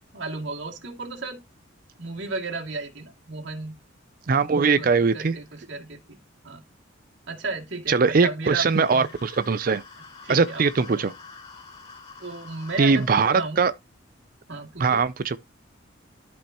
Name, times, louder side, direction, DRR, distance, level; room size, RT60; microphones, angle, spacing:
voice 1, 0.1-1.4 2.0-3.7 4.6-6.2 6.4-6.6 7.3-9.1 10.2-10.6 10.9-11.0 12.2-13.6 14.5-15.1, right 3 dB, 60° right, 2.4 m, -34 dB
voice 2, 4.3-5.3 7.9-9.8 10.3-11.1 12.8-13.7 14.8-15.4, right 5 dB, 45° right, 0.4 m, -21 dB
sound 1, 8.6-13.3, left 4 dB, 25° left, 3.8 m, -46 dB
13.5 x 5.3 x 2.9 m
head